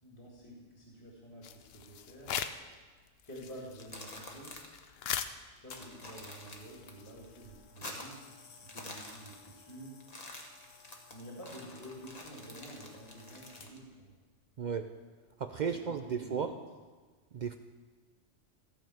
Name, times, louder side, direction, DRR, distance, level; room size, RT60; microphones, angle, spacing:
voice 1, 0.0-2.3 3.2-4.6 5.6-8.2 8.6-10.0 11.1-14.2 15.6-16.6, right 1 dB, 15° left, -5 dB, 2.0 m, -49 dB
sound 1, 1.4-2.7 3.1-7.7, left 8 dB, 60° left, 0.8 m, -41 dB
sound 2, 3.6-4.9 5.1-5.2 5.6-6.9 7.2-8.3 8.6-9.7 10.0-13.8, left 2 dB, 35° left, 1.3 m, -48 dB
sound 3, 5.7-14.0 14.8-15.0, left 5 dB, 80° left, 1.4 m, -58 dB
voice 2, 14.6-14.9 15.4-16.5 17.3-17.6, right 6 dB, 70° right, 8 dB, 0.4 m, -34 dB
14.5 x 5.3 x 7.6 m, 1.4 s
omnidirectional pair, 1.3 m